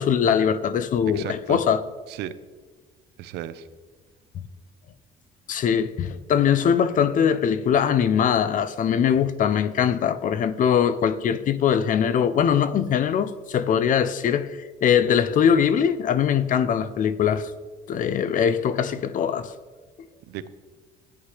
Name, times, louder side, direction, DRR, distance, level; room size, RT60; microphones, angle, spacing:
voice 1, 0.0-1.8 5.5-17.5 17.9-19.5 20.0-20.1, left 8 dB, 50° left, 0.6 m, -22 dB
voice 2, 1.1-1.6 2.1-2.3 3.2-3.7 20.3-20.5, right 11 dB, 85° right, 0.6 m, -34 dB
13.0 x 9.5 x 3.3 m
cardioid pair, 110°, 17 cm